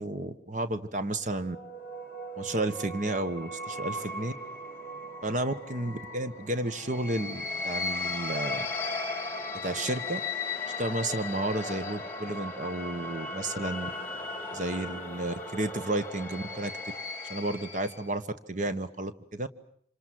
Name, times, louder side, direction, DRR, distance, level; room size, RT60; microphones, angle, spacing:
voice 1, 0.0-1.6 2.4-4.3 5.2-8.7 9.6-10.2 10.8-13.9 14.5-16.7 17.3-19.5, right 1 dB, 40° right, 10 dB, 1.3 m, -32 dB
sound 1, 1.3-18.1, left 2 dB, 15° left, 3.4 m, -37 dB
28.0 x 26.5 x 7.6 m, 0.64 s
head